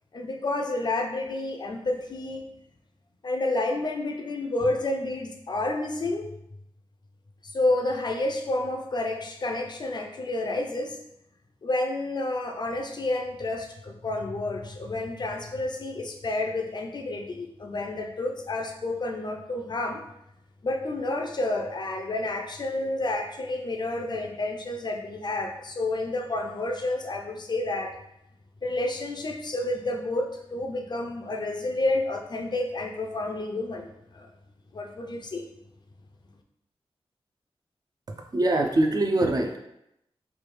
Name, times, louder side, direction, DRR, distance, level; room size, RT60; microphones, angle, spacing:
voice 1, 0.1-2.5 3.2-6.3 7.5-11.0 11.6-20.0 20.6-28.0 28.6-34.3 34.7-35.4, left 2 dB, 45° left, 3 dB, 0.4 m, -30 dB
voice 2, 38.3-39.6, right 1 dB, 40° right, 3 dB, 0.4 m, -23 dB
3.2 x 2.3 x 3.1 m, 0.80 s
wide cardioid pair, 110°, 10 cm